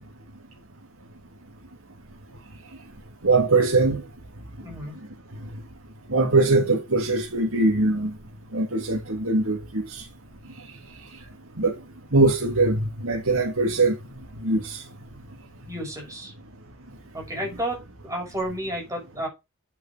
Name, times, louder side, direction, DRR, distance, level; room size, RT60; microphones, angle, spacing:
voice 1, 3.2-4.0 6.1-8.1 8.5-10.0 11.6-11.7 12.1-13.9 14.4-14.8, right 2 dB, 75° right, 3.4 m, -21 dB
voice 2, 4.6-5.0 15.7-16.3 17.1-19.3, right 1 dB, 15° right, 6.4 m, -32 dB
9.5 x 8.1 x 4.6 m
head